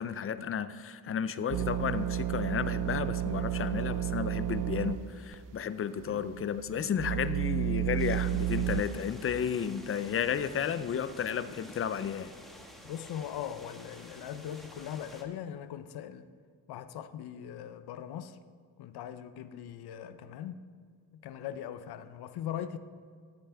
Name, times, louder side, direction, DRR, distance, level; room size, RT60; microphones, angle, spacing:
voice 1, 0.0-12.3, left 8 dB, 35° left, 0.4 m, -33 dB
sound 1, 1.5-5.0 5.3-5.4 6.1-8.8, right 11 dB, 60° right, 0.5 m, -31 dB
sound 2, 8.0-15.2, equal, ahead, 1.3 m, -51 dB
voice 2, 12.6-16.3 16.7-18.4 18.8-20.6 21.2-22.8, left 10 dB, 85° left, 0.6 m, -40 dB
13.5 x 9.0 x 3.4 m
cardioid pair, 120°, 38 cm